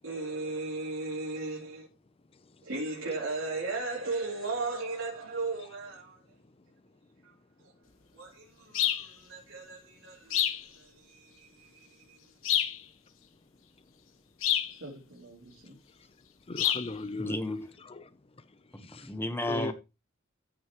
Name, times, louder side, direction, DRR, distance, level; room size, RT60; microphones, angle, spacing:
voice 1, 0.0-1.9 2.6-6.2 7.2-7.3 7.6-7.7 8.1-12.2 14.7-15.8, right 3 dB, 70° right, 3.0 m, -37 dB
sound 1, 8.7-9.1 10.3-10.7 12.4-12.8 14.4-14.7 16.6-16.9, left 11 dB, 75° left, 1.1 m, -27 dB
voice 2, 16.5-18.0 18.9-19.0 19.5-19.7, left 2 dB, 30° left, 0.6 m, -37 dB
voice 3, 17.2-17.6 18.9-19.7, left 1 dB, 10° left, 1.1 m, -33 dB
13.5 x 6.4 x 3.0 m
head